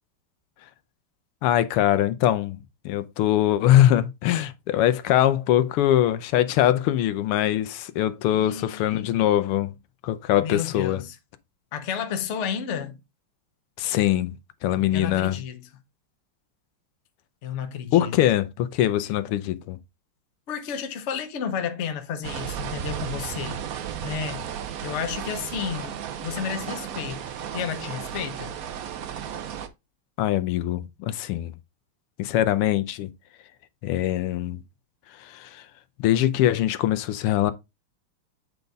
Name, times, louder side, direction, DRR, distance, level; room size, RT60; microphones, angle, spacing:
voice 1, 1.4-9.7 10.0-11.0 13.8-14.4 14.6-15.4 17.9-19.8 30.2-31.5 32.2-33.1 33.8-34.6 35.1-35.7 36.0-37.5, left 12 dB, 85° left, 1.6 m, -22 dB
voice 2, 8.3-9.1 10.4-11.1 11.7-13.0 14.9-15.7 17.4-18.2 20.5-23.7 24.0-27.2 27.5-28.6, left 7 dB, 55° left, 0.8 m, -32 dB
sound 1, 22.2-29.7, right 9 dB, 85° right, 0.7 m, -34 dB
8.0 x 4.0 x 3.4 m
omnidirectional pair, 2.4 m